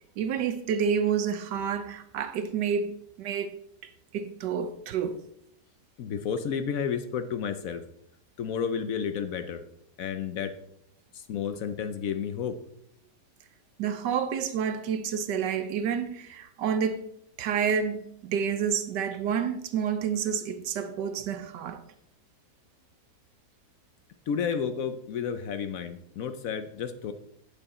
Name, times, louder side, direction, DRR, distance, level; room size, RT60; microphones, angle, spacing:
voice 1, 0.2-2.9 3.2-3.5 3.8-5.2 13.8-17.1 17.4-21.8, right 7 dB, 85° right, 1.3 m, -29 dB
voice 2, 6.0-7.8 8.4-9.6 10.0-10.6 11.1-12.6 24.3-27.1, left 7 dB, 65° left, 0.9 m, -31 dB
9.1 x 6.8 x 4.2 m
omnidirectional pair, 1.8 m